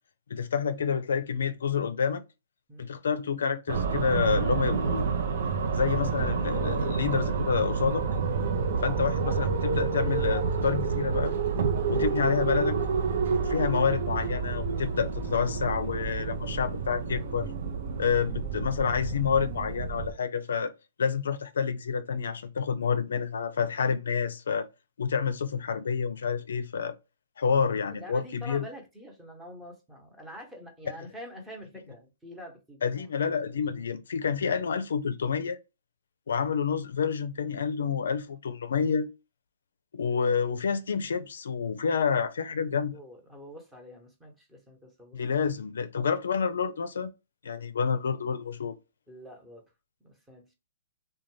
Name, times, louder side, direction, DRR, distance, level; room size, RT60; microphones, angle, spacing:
voice 1, 0.3-2.2 2.8-5.1 5.7-8.0 8.8-11.3 11.9-12.8 13.3-17.5 18.0-20.7 21.0-24.7 25.0-27.0 27.4-28.7 32.8-35.6 36.3-39.1 39.9-43.0 45.1-47.1 47.4-48.8, left 6 dB, 75° left, 0.4 m, -28 dB
sound 1, 3.7-20.1, right 5 dB, 60° right, 0.6 m, -29 dB
voice 2, 27.9-33.1 40.1-40.2 42.9-45.4 49.1-49.6 50.0-50.5, equal, 5° right, 0.9 m, -46 dB
2.5 x 2.2 x 3.1 m
hypercardioid pair, 130°, 0 cm